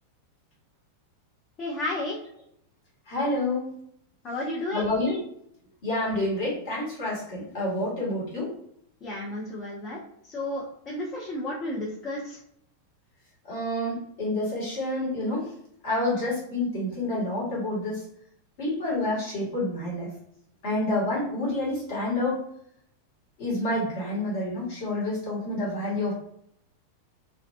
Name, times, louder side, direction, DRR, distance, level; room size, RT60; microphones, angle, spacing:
voice 1, 1.6-2.2 4.2-4.9 9.0-12.4, left 1 dB, 30° left, -3 dB, 0.6 m, -32 dB
voice 2, 3.1-3.7 4.7-5.2 5.8-8.5 13.5-15.5 15.8-18.0 18.6-20.1 20.6-22.4 23.4-26.1, left 1 dB, 50° left, -5 dB, 1.2 m, -28 dB
2.6 x 2.2 x 2.4 m, 0.70 s
figure-of-eight pair, 90°, 0 cm